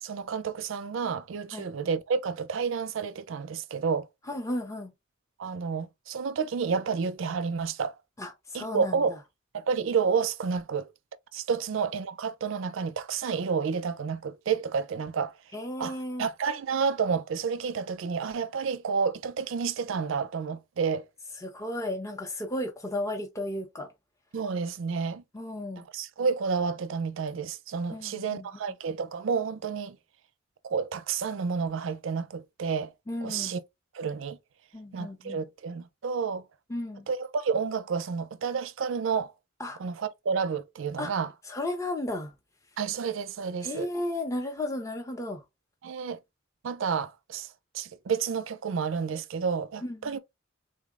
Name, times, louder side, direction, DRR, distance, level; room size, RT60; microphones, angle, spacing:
voice 1, 0.0-4.1 5.4-8.0 8.5-9.1 9.5-10.9 11.3-15.3 15.8-21.0 24.3-25.2 25.8-30.0 30.6-32.9 33.2-33.6 33.9-34.4 34.9-36.4 37.1-39.3 39.8-41.3 42.8-43.9 45.8-46.2 46.6-47.5 47.7-50.2, right 5 dB, 65° right, 0.4 m, -30 dB
voice 2, 4.3-4.9 8.2-9.2 15.5-16.3 21.4-23.9 25.3-25.9 27.9-28.8 33.1-33.5 34.7-35.4 36.7-37.1 39.6-39.8 41.0-41.1 41.5-42.3 43.6-45.4 49.8-50.2, left 1 dB, 15° left, 0.6 m, -34 dB
3.6 x 2.0 x 3.5 m
head